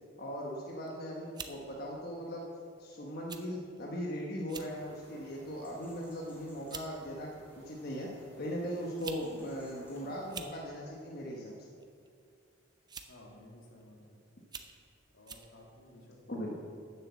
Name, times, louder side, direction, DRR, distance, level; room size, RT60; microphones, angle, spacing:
voice 1, 0.2-2.5 2.8-8.1 8.4-11.5 16.3-16.5, equal, 55° left, -2 dB, 1.2 m, -39 dB
sound 1, 0.7-0.9 1.3-1.6 2.4-2.6 3.3-3.4 3.8-3.9 4.4-4.7 5.2-5.5 6.3-6.4 6.7-6.9 8.0-8.1 8.8-9.3 9.5-9.6 10.2-10.6 11.8-12.1 12.9-13.2 13.8-13.9 14.4-14.8 15.3-15.5, right 5 dB, 20° right, 0.6 m, -45 dB
sound 2, 4.7-10.4, equal, 10° left, 3.3 m, -59 dB
voice 2, 13.1-14.2 15.1-16.5, left 1 dB, 85° left, -1 dB, 2.2 m, -55 dB
10.5 x 6.9 x 7.4 m, 2.3 s
head